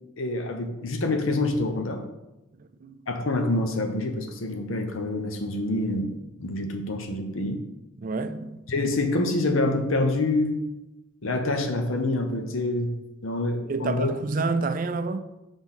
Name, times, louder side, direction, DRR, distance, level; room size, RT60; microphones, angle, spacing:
voice 1, 0.2-2.0 3.1-7.6 8.7-10.6 11.2-14.1, left 2 dB, 75° left, 0.9 m, -26 dB
voice 2, 2.6-3.0 8.0-8.7 13.7-15.2, right 3 dB, 40° right, 0.4 m, -29 dB
6.2 x 3.5 x 5.6 m
head